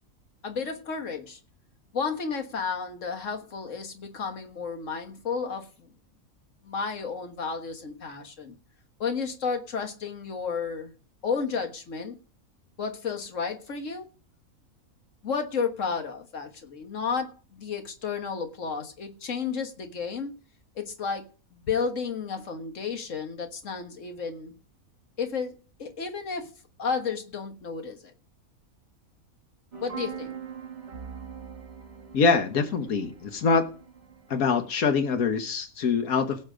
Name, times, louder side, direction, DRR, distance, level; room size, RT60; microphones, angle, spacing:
voice 1, 0.4-1.4 1.9-5.9 6.6-8.6 9.0-10.9 11.2-12.2 12.8-14.1 15.2-20.4 20.8-21.3 21.5-24.5 25.2-25.5 25.8-26.5 26.8-28.1 29.8-30.4, left 5 dB, 60° left, 1.9 m, -32 dB
sound 1, 29.7-34.7, right 7 dB, 50° right, 1.7 m, -42 dB
voice 2, 32.1-33.7 34.3-36.4, left 5 dB, 90° left, 1.6 m, -24 dB
18.0 x 7.3 x 5.1 m
omnidirectional pair, 1.5 m